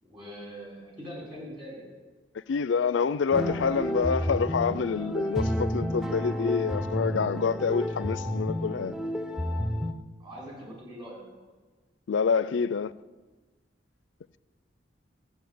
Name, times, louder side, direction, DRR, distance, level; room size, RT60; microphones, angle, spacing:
voice 1, 0.0-1.8 10.2-11.2, equal, 25° right, 5.7 m, -42 dB
voice 2, 2.3-8.9 12.1-12.9, left 5 dB, 80° left, 0.4 m, -27 dB
sound 1, 3.3-9.9, equal, 5° right, 0.6 m, -30 dB
13.0 x 6.9 x 9.4 m
head